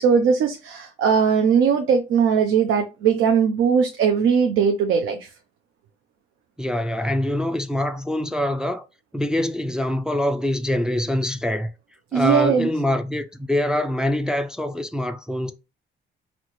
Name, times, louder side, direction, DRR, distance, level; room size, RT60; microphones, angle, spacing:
voice 1, 0.0-5.3 12.1-12.7, right 6 dB, 80° right, 0.5 m, -19 dB
voice 2, 6.6-8.8 9.1-11.7 12.1-15.5, left 1 dB, 5° right, 0.3 m, -24 dB
4.0 x 2.1 x 3.0 m
cardioid pair, 90°, 20 cm